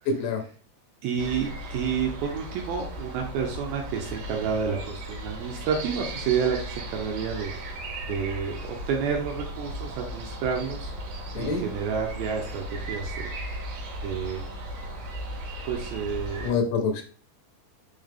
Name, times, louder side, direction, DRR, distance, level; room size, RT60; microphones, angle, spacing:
voice 1, 0.1-0.4 11.4-11.6 16.4-17.0, left 4 dB, 85° left, 4 dB, 3.4 m, -26 dB
voice 2, 1.0-7.5 8.1-10.9 11.3-13.3 14.0-14.5 15.6-16.6, right 6 dB, 75° right, 1 dB, 2.2 m, -30 dB
sound 1, 1.2-16.5, right 1 dB, 60° right, 2.7 m, -36 dB
7.0 x 3.8 x 3.5 m, 0.40 s
omnidirectional pair, 5.0 m